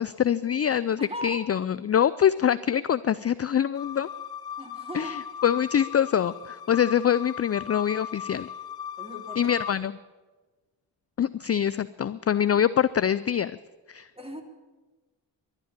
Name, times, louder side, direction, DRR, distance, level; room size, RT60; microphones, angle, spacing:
voice 1, 0.0-4.1 4.9-8.5 9.4-10.0 11.2-13.5 13.9-14.1, left 9 dB, 30° left, 16 dB, 0.4 m, -24 dB
voice 2, 1.0-1.4 4.6-5.2 9.0-9.5 9.8-9.9 14.1-14.4, equal, 10° right, 3 dB, 3.1 m, -38 dB
sound 1, 3.7-9.7, left 9 dB, 50° left, 1.1 m, -38 dB
12.0 x 9.9 x 10.0 m, 1.3 s
supercardioid pair, 40°, 49 cm